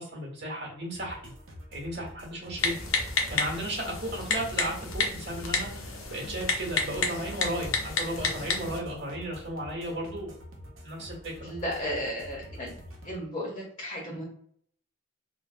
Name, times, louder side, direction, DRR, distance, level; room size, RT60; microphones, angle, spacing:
voice 1, 0.0-1.3 1.7-2.8 3.3-10.3 10.8-11.5, right 1 dB, 55° right, -2 dB, 1.3 m, -35 dB
sound 1, 0.9-13.2, equal, 75° right, 0.6 m, -47 dB
Typing, 2.6-8.8, left 4 dB, 90° left, 0.6 m, -31 dB
voice 2, 11.4-12.7 13.0-14.2, equal, 30° left, -3 dB, 0.7 m, -34 dB
3.3 x 2.1 x 2.5 m, 0.63 s
head